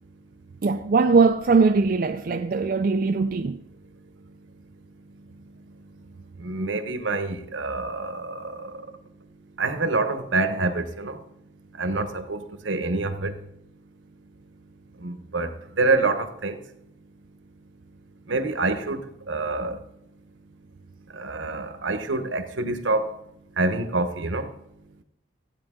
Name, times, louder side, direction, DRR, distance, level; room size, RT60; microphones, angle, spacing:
voice 1, 0.6-3.6, right 4 dB, 45° right, 0.4 m, -20 dB
voice 2, 6.4-8.7 9.6-11.2 11.8-13.4 15.0-16.6 18.3-19.0 19.3-19.8 21.1-23.1 23.6-24.5, right 3 dB, 75° right, 1.0 m, -26 dB
15.0 x 8.9 x 3.7 m
head